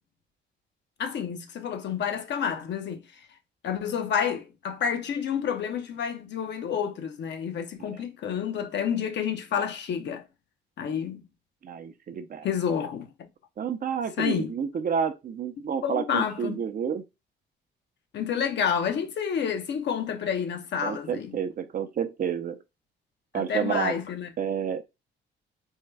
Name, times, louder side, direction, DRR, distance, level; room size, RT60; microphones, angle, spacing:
voice 1, 1.0-3.0 3.6-10.2 10.8-11.2 12.4-13.3 14.2-14.5 15.8-16.6 18.1-21.4 23.3-24.3, left 7 dB, 60° left, 0.7 m, -29 dB
voice 2, 11.6-12.5 13.6-17.0 20.8-22.6 23.3-23.9 24.4-24.8, right 7 dB, 45° right, 0.5 m, -29 dB
3.6 x 2.2 x 3.2 m
cardioid pair, 90°, 20 cm